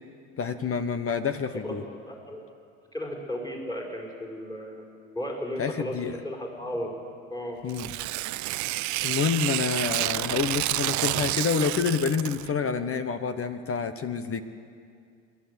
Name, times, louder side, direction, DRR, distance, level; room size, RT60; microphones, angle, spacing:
voice 1, 0.4-1.8 5.6-6.2 7.6-7.9 9.0-14.4, left 6 dB, 30° left, 11 dB, 1.2 m, -28 dB
voice 2, 2.1-2.4 2.9-6.9 7.3-7.6, equal, 10° left, 0 dB, 5.3 m, -35 dB
Tearing, 7.7-12.5, right 18 dB, 45° right, 0.5 m, -29 dB
28.5 x 12.0 x 8.4 m, 2.3 s
hypercardioid pair, 85°, 44 cm